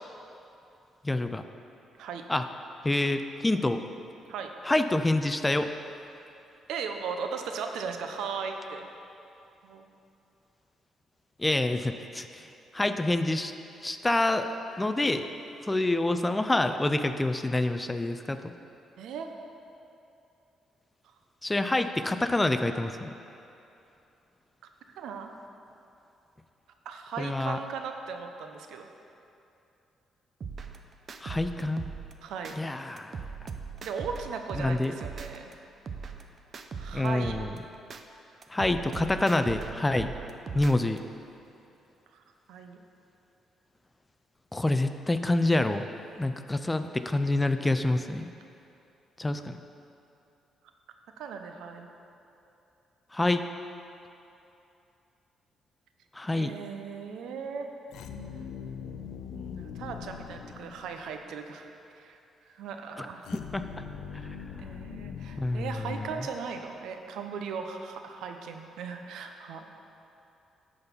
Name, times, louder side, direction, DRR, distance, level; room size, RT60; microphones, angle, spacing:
voice 1, 1.0-1.4 2.3-2.4 2.8-3.8 4.7-5.7 11.4-12.5 12.7-13.5 13.8-14.5 14.8-15.3 15.7-18.4 21.4-23.1 27.2-27.6 31.2-31.9 32.6-33.2 34.6-34.9 36.9-37.5 38.5-40.1 40.5-41.0 44.5-45.9 46.2-48.3 49.2-49.6 53.1-53.4 56.2-56.5 63.0-63.1 63.4-63.6 64.1-64.4 65.4-66.0, left 2 dB, 15° left, 9 dB, 0.4 m, -27 dB
voice 2, 6.7-8.9 9.6-9.8 19.0-19.3 24.9-25.3 26.8-28.9 32.2-32.6 33.8-35.5 36.7-37.4 42.1-42.2 42.5-42.8 51.2-51.9 56.3-57.7 58.1-58.4 59.3-61.7 61.9-62.2 62.5-63.3 64.1-64.3 64.6-69.6, right 5 dB, 80° right, 5 dB, 0.7 m, -38 dB
sound 1, 30.4-32.6 33.0-35.5 35.9-38.0 38.4-41.0, right 5 dB, 50° right, 0.6 m, -40 dB
sound 2, 57.9-61.2 63.2-66.5, left 7 dB, 80° left, 0.5 m, -42 dB
11.0 x 4.0 x 7.0 m, 2.8 s
cardioid pair, 90°, 0 cm